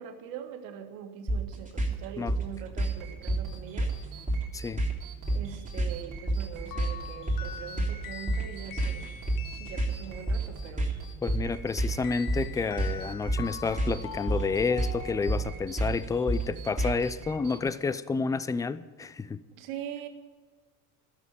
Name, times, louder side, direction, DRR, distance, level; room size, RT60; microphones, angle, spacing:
voice 1, 0.0-3.9 5.3-9.1 9.6-11.1 19.6-20.1, right 9 dB, 75° right, 5 dB, 1.9 m, -42 dB
sound 1, 1.3-17.2, right 2 dB, 20° right, 3.3 m, -30 dB
sound 2, 2.8-17.7, right 3 dB, 50° right, 3.1 m, -46 dB
sound 3, 6.7-10.4 12.0-15.8, left 9 dB, 50° left, 0.8 m, -44 dB
voice 2, 11.2-19.4, left 4 dB, 10° left, 15 dB, 0.4 m, -30 dB
12.5 x 7.6 x 9.1 m, 1.4 s
supercardioid pair, 95°, 42 cm